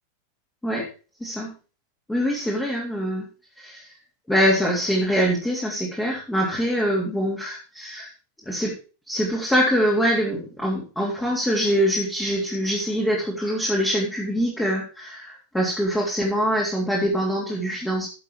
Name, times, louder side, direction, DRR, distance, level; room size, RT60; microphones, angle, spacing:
voice 1, 1.2-1.5 2.1-3.2 3.6-3.9 4.3-8.1 8.4-8.7 9.1-18.1, equal, 5° left, -3 dB, 3.5 m, -24 dB
15.0 x 6.9 x 4.7 m, 0.36 s
figure-of-eight pair, 90°, 0 cm